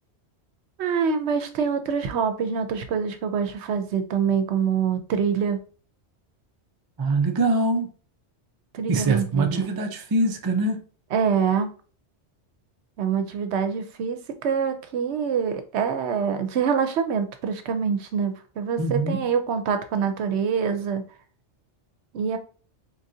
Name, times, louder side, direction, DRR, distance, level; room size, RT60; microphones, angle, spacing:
voice 1, 0.8-5.6 8.7-9.6 11.1-11.7 13.0-21.0 22.1-22.4, right 6 dB, 75° right, 0.9 m, -25 dB
voice 2, 7.0-7.9 8.9-10.8 18.8-19.2, right 2 dB, 35° right, 0.4 m, -23 dB
3.8 x 3.6 x 2.7 m
omnidirectional pair, 1.2 m